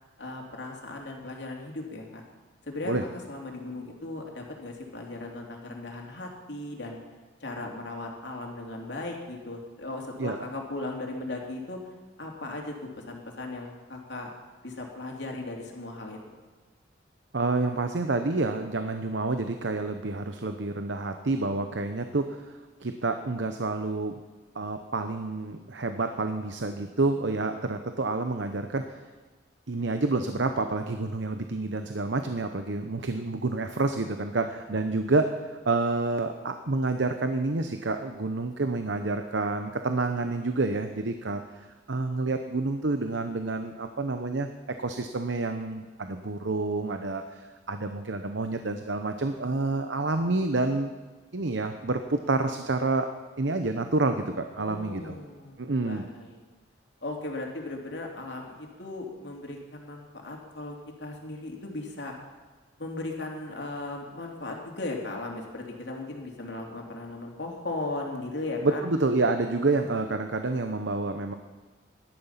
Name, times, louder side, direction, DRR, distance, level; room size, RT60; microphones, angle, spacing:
voice 1, 0.2-2.2 2.6-7.0 7.4-11.8 12.2-14.3 14.6-16.4 54.6-56.4 57.0-62.2 62.8-68.8, left 2 dB, 65° left, 0 dB, 3.0 m, -37 dB
voice 2, 17.3-24.1 24.5-28.8 29.7-41.4 41.9-44.5 44.8-50.9 51.3-53.1 53.4-55.1 55.6-56.0 68.6-71.3, right 3 dB, 70° right, 7 dB, 0.9 m, -28 dB
18.0 x 12.0 x 5.8 m, 1.3 s
head